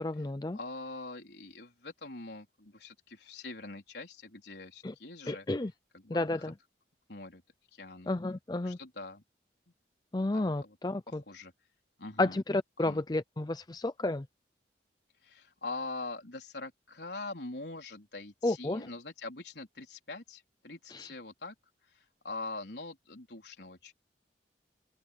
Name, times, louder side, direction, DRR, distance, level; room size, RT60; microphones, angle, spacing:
voice 1, 0.0-0.6 4.8-4.9 5.3-5.7 6.1-6.5 8.1-8.8 10.1-11.2 12.2-14.3 18.4-18.9 20.9-21.1, left 2 dB, 20° left, 0.5 m, -31 dB
voice 2, 0.5-5.4 5.9-6.4 7.1-7.4 7.7-8.1 8.6-9.2 10.3-10.8 11.1-11.5 12.0-12.4 12.8-13.0 15.2-21.5 21.9-23.9, left 3 dB, 70° left, 4.1 m, -43 dB
head